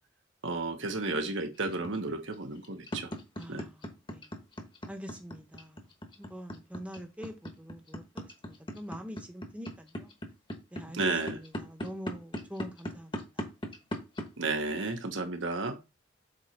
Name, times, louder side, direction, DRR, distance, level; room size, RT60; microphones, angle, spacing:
voice 1, 0.4-3.1 3.5-3.6 10.9-11.4 14.4-15.8, right 3 dB, 80° right, 1.1 m, -32 dB
sound 1, 1.7-14.3, equal, 25° left, 1.1 m, -38 dB
voice 2, 3.4-4.3 4.9-5.8 6.2-10.1 10.7-13.5, equal, 5° right, 0.9 m, -45 dB
7.7 x 3.1 x 4.4 m
head